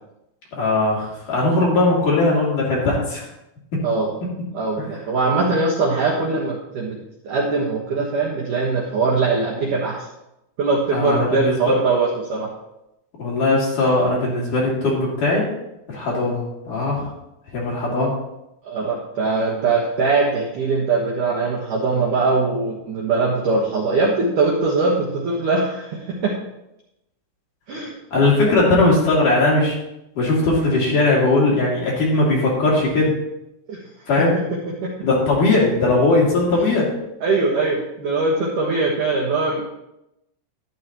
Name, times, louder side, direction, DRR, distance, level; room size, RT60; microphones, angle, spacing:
voice 1, 0.5-3.2 10.9-11.6 13.2-15.5 15.9-17.1 17.5-18.1 28.1-29.7 30.2-33.1 34.1-34.4 35.0-36.9, left 2 dB, 45° left, -5 dB, 3.8 m, -19 dB
voice 2, 4.5-7.0 7.2-10.1 10.6-12.5 18.6-26.4 27.7-27.9 33.7-33.8 34.2-34.3 34.8-35.1 36.6-36.7 37.2-39.7, right 3 dB, 75° right, -2 dB, 1.9 m, -21 dB
12.5 x 12.0 x 3.0 m, 0.88 s
omnidirectional pair, 6.0 m